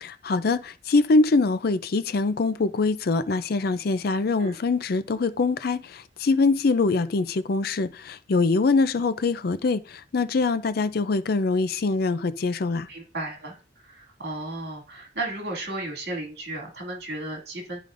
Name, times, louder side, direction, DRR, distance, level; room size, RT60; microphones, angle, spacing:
voice 1, 0.0-12.9, left 3 dB, 55° left, 0.5 m, -23 dB
voice 2, 12.9-17.8, right 2 dB, 65° right, 2.4 m, -34 dB
10.5 x 5.0 x 2.6 m
head